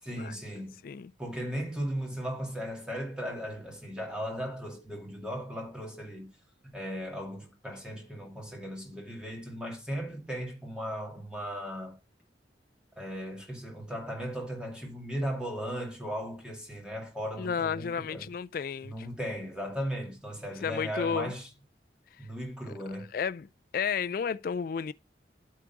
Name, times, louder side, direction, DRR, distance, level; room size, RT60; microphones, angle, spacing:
voice 1, 0.0-0.8 1.2-6.3 6.6-12.0 13.0-18.3 18.8-21.5 22.2-23.1, equal, 5° right, 2.3 m, -37 dB
voice 2, 17.4-19.1 20.6-21.3 23.1-24.9, left 6 dB, 50° left, 0.3 m, -32 dB
8.4 x 3.7 x 5.8 m
head